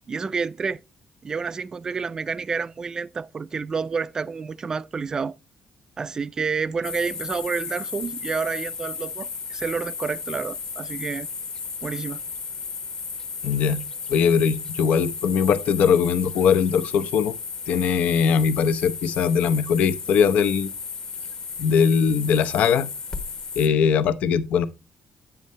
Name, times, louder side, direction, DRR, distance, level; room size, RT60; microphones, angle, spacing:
voice 1, 0.1-0.8 1.2-5.4 6.0-11.3 11.8-12.2, right 5 dB, 25° right, 0.3 m, -29 dB
sound 1, 6.8-23.7, left 5 dB, 30° left, 1.0 m, -34 dB
voice 2, 13.4-13.8 14.1-17.3 17.7-20.7 21.6-22.9 23.6-24.7, left 7 dB, 70° left, 0.7 m, -20 dB
9.4 x 7.0 x 3.2 m
cardioid pair, 160°, 3 cm